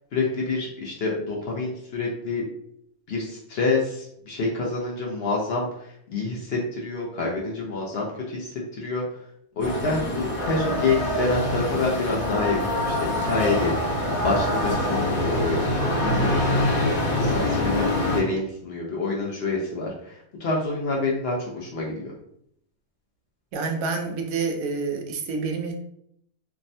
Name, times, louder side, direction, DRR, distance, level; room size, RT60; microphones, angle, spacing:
voice 1, 0.1-2.4 3.1-9.0 9.6-15.6 16.0-16.7 17.1-22.1, left 3 dB, 70° left, -3 dB, 0.5 m, -27 dB
sound 1, 9.6-18.2, left 1 dB, 45° left, 0.8 m, -25 dB
voice 2, 23.5-25.7, right 4 dB, 70° right, 4 dB, 0.9 m, -28 dB
3.4 x 2.1 x 2.6 m, 0.72 s
omnidirectional pair, 1.7 m